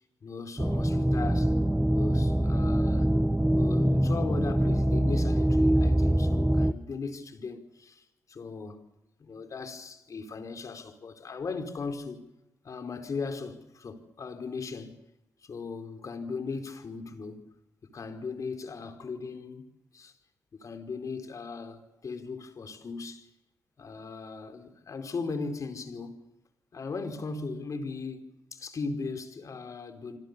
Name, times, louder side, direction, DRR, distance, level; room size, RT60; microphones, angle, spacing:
voice 1, 0.2-1.5 1.9-3.1 3.5-8.8 9.2-12.2 12.6-15.0 15.4-17.4 17.8-19.6 19.9-20.1 20.6-23.2 23.8-26.2 26.7-30.2, left 4 dB, 55° left, 5.0 m, -38 dB
sound 1, 0.6-6.7, right 1 dB, 5° right, 1.5 m, -24 dB
28.0 x 25.5 x 7.0 m
hypercardioid pair, 40°, 7 cm